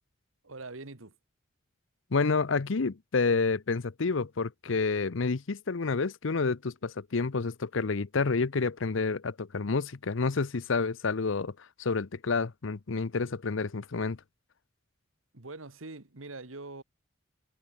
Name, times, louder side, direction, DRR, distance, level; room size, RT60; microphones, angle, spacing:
voice 1, 0.4-1.2 15.3-16.8, right 3 dB, 85° right, 1.9 m, -43 dB
voice 2, 2.1-11.5 11.8-14.2, left 4 dB, 70° left, 0.7 m, -29 dB
head